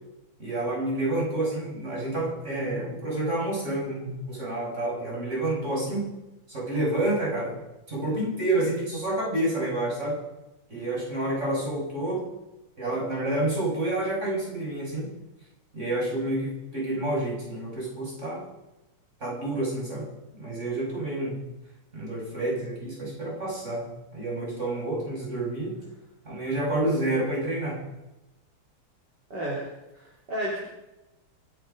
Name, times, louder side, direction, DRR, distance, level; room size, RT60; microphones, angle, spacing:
voice 1, 0.4-6.0 6.5-7.6 7.9-10.2 10.7-12.2 12.8-15.1 15.7-18.5 19.2-20.1 20.3-21.4 21.9-23.9 24.1-25.8 26.2-27.8, right 1 dB, 30° right, -4 dB, 6.3 m, -29 dB
voice 2, 29.3-30.6, right 1 dB, 50° right, -4 dB, 3.9 m, -33 dB
26.0 x 9.6 x 5.2 m, 0.98 s
omnidirectional pair, 2.4 m